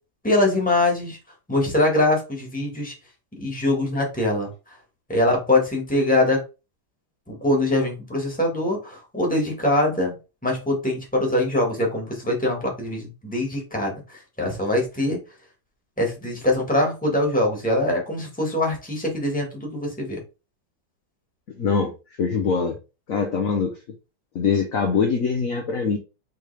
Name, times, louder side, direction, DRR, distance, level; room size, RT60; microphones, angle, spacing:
voice 1, 0.2-1.2 1.5-2.9 3.4-4.5 5.1-6.4 7.3-10.2 10.4-15.2 16.0-20.2, left 1 dB, 5° left, -1 dB, 1.4 m, -23 dB
voice 2, 21.6-21.9 22.2-22.8 23.1-23.8 24.3-26.0, left 5 dB, 60° left, 3 dB, 1.0 m, -23 dB
4.6 x 3.4 x 3.3 m, 0.30 s
omnidirectional pair, 2.0 m